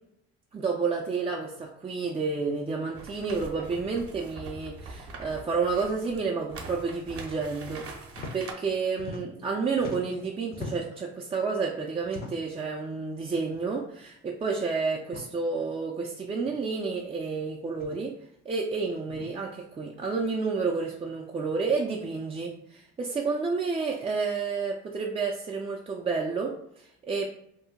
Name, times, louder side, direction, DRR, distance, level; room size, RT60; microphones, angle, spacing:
voice 1, 0.5-7.9 8.3-18.1 18.5-27.3, right 4 dB, 20° right, -2 dB, 0.3 m, -30 dB
sound 1, 3.0-8.5, right 3 dB, 50° right, 0.7 m, -43 dB
sound 2, 8.1-8.4 8.6-9.5 9.7-11.0 12.0-12.6 13.5-13.7 14.0-14.1 15.0-15.3 16.4-16.5 17.7-18.0 19.1-19.3, left 3 dB, 35° left, 0.6 m, -41 dB
2.7 x 2.1 x 3.7 m, 0.76 s
cardioid pair, 85°, 29 cm